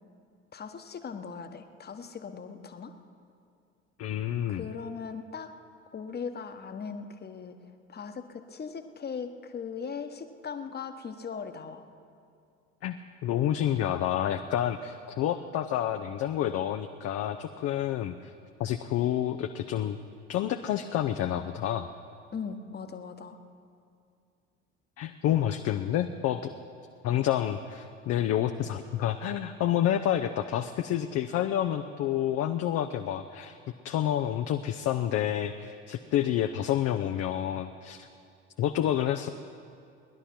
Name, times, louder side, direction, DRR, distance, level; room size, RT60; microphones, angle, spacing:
voice 1, 0.5-2.9 4.5-5.5 5.9-11.8 22.3-23.4, left 6 dB, 25° left, 7 dB, 1.2 m, -39 dB
voice 2, 4.0-4.6 12.8-18.3 18.6-20.0 20.3-21.9 25.0-26.5 27.0-33.6 33.8-38.1 38.6-39.3, left 11 dB, 40° left, 7 dB, 0.7 m, -29 dB
19.0 x 11.0 x 6.1 m, 2.4 s
figure-of-eight pair, 65°, 37 cm